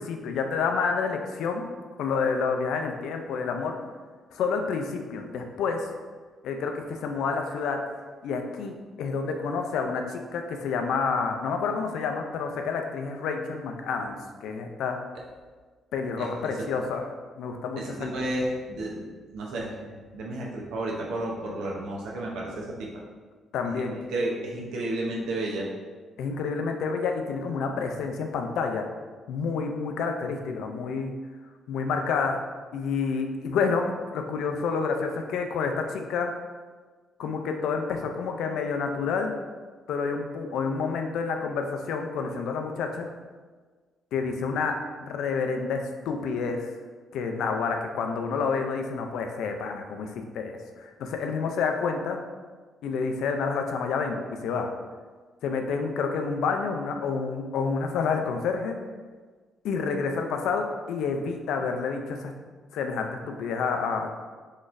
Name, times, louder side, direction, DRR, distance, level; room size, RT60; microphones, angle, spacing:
voice 1, 0.0-1.7 2.0-3.8 4.3-5.9 6.4-7.9 8.2-15.0 15.9-17.1 17.4-18.3 23.5-24.0 26.2-28.9 29.3-31.1 31.7-32.4 32.7-36.4 37.2-39.4 39.9-43.1 44.1-46.7 47.1-52.2 52.8-54.7 55.4-58.8 59.6-62.3 62.7-64.1, left 5 dB, 80° left, 4 dB, 0.4 m, -29 dB
voice 2, 17.8-19.1 19.3-22.9 23.7-25.7, right 1 dB, 85° right, -3 dB, 0.7 m, -32 dB
4.0 x 3.0 x 2.5 m, 1.4 s
cardioid pair, 90°, 0 cm